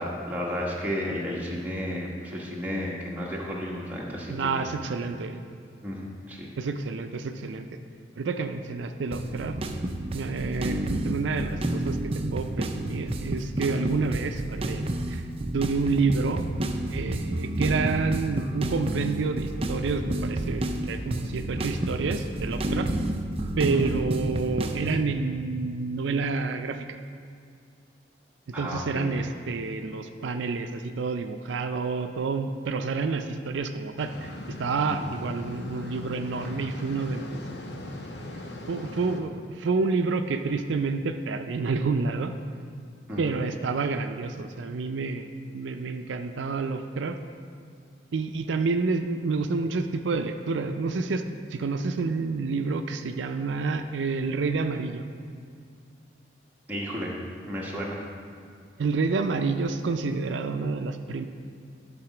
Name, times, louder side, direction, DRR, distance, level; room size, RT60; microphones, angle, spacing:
voice 1, 0.0-4.6 5.8-6.5 23.7-23.8 28.5-29.1 34.9-35.1 43.1-43.3 56.7-57.1 57.5-58.0, equal, 10° right, -4 dB, 1.3 m, -33 dB
voice 2, 4.3-5.4 6.6-7.7 8.1-9.6 10.1-12.0 12.3-15.2 15.5-16.4 16.9-22.9 23.6-27.0 28.6-34.3 34.6-37.4 38.3-38.4 38.7-42.3 43.2-47.2 48.1-51.2 51.5-55.0 58.8-61.2, right 4 dB, 85° right, 7 dB, 0.4 m, -29 dB
sound 1, 9.1-25.0, right 1 dB, 30° right, 0.5 m, -30 dB
sound 2, 34.0-39.2, left 1 dB, 70° left, 0.8 m, -39 dB
11.5 x 4.1 x 5.9 m, 2.2 s
head